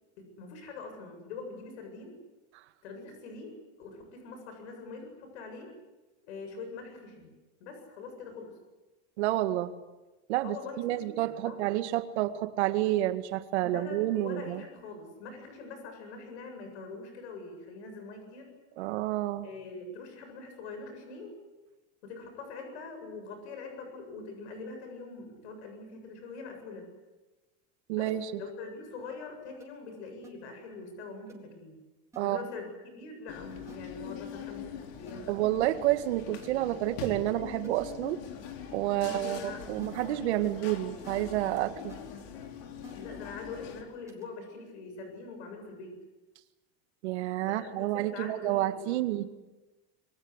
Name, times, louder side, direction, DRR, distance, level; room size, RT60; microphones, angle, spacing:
voice 1, 0.2-2.2 2.8-5.7 6.3-7.3 7.6-8.6 10.4-11.6 13.6-18.5 19.4-21.4 22.0-26.9 27.9-28.1 28.4-31.7 32.2-34.7 35.0-35.4 38.9-39.9 43.0-46.0 47.4-49.0, left 4 dB, 90° left, 5 dB, 7.8 m, -43 dB
voice 2, 9.2-9.7 10.3-14.6 18.8-19.5 27.9-28.4 32.2-32.4 35.3-38.2 38.7-39.4 39.7-42.0 47.0-49.2, right 15 dB, 90° right, 9 dB, 2.1 m, -29 dB
sound 1, 28.1-28.2 29.6-29.7 30.2-30.3 31.3-31.4 32.1-32.2 33.7-33.8 35.1-35.2 36.4-36.5 37.3-37.4 37.6-37.7 39.4-39.5 39.8-39.9 41.0-41.5 41.9-42.0 42.8-43.2 44.1-44.2, right 2 dB, 10° right, 3.7 m, -52 dB
sound 2, 33.3-43.8, left 7 dB, 70° left, 4.3 m, -43 dB
27.0 x 23.0 x 8.2 m, 1.1 s
supercardioid pair, 165°, 33 cm